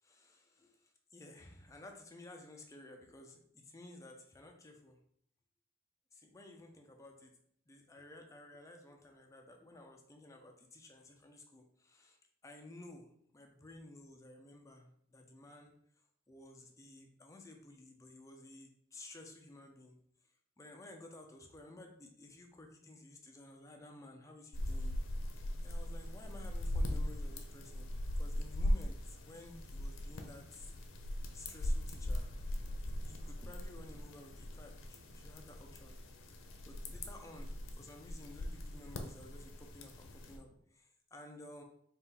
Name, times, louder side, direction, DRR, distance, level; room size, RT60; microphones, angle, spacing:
voice 1, 0.0-5.0 6.1-7.3 7.7-15.7 16.3-20.0 20.6-25.0 25.6-30.7 31.3-32.3 33.0-36.0 36.7-41.6, left 2 dB, 15° left, 2 dB, 0.5 m, -54 dB
sound 1, 24.5-40.4, left 1 dB, 90° left, 0.6 m, -39 dB
4.1 x 2.5 x 3.7 m, 0.66 s
head